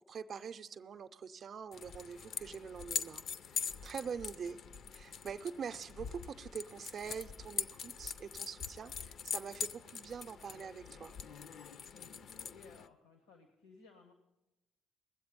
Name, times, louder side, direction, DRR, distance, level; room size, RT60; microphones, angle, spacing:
voice 1, 0.1-3.2 3.5-4.6 4.9-8.9 9.2-11.1, right 6 dB, 50° right, 0.5 m, -44 dB
sound 1, 1.7-12.9, left 6 dB, 55° left, 0.5 m, -43 dB
voice 2, 11.9-14.1, left 4 dB, 90° left, 1.1 m, -59 dB
20.0 x 7.9 x 5.2 m
hypercardioid pair, 45°, 0 cm